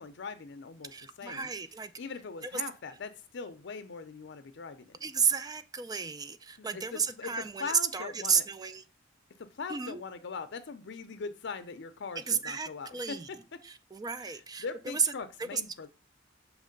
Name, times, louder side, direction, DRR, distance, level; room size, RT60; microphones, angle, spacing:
voice 1, 0.0-1.5 2.0-5.0 6.6-8.4 9.4-13.6 14.2-15.9, left 4 dB, 65° left, 0.5 m, -41 dB
voice 2, 0.9-1.9 2.4-2.6 5.0-8.8 9.7-10.0 12.3-13.3 13.6-15.1 15.5-15.6, right 6 dB, 20° right, 0.4 m, -32 dB
6.5 x 3.0 x 5.1 m
head